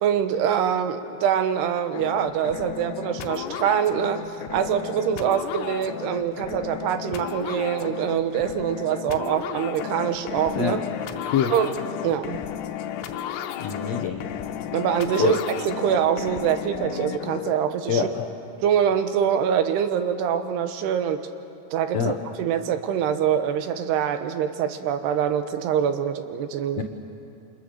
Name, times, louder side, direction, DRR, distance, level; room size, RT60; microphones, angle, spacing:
voice 1, 0.0-4.2 4.5-10.8 11.5-11.7 12.0-12.4 14.7-18.0 18.6-21.2 21.7-26.8, right 8 dB, 80° right, 9 dB, 3.0 m, -24 dB
sound 1, 1.9-17.5, left 9 dB, 90° left, 3.1 m, -33 dB
voice 2, 13.6-14.3 15.2-15.4 17.9-18.3 21.9-22.2 26.8-26.9, left 7 dB, 70° left, 3 dB, 1.5 m, -25 dB
29.0 x 26.5 x 6.7 m, 2.7 s
omnidirectional pair, 4.7 m